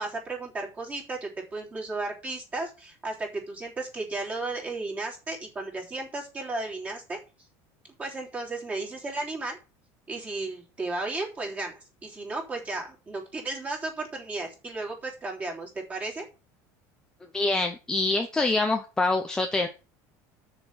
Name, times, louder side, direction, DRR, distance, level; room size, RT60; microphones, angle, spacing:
voice 1, 0.0-7.2 8.0-9.6 10.1-16.3, right 2 dB, 20° right, -1 dB, 3.4 m, -34 dB
voice 2, 17.3-19.7, left 2 dB, 10° left, 4 dB, 0.8 m, -25 dB
6.9 x 6.9 x 7.7 m, 0.32 s
cardioid pair, 160°, 8 cm